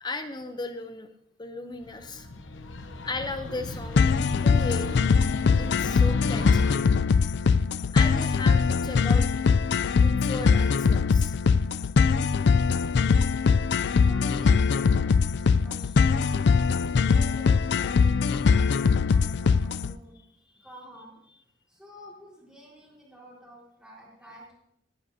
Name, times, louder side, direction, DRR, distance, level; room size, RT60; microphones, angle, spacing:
voice 1, 0.0-1.1 1.4-2.3 3.0-4.9 5.6-6.7 7.9-9.3 9.9-11.3, left 2 dB, 25° left, 8 dB, 0.7 m, -36 dB
sound 1, 1.8-6.8, left 2 dB, 80° left, 0.9 m, -36 dB
sound 2, 4.0-19.9, left 5 dB, 60° left, 0.4 m, -22 dB
voice 2, 14.0-16.7 17.1-20.2 20.6-21.2 21.7-24.5, equal, 5° right, -5 dB, 4.6 m, -49 dB
19.5 x 10.5 x 2.8 m, 0.76 s
head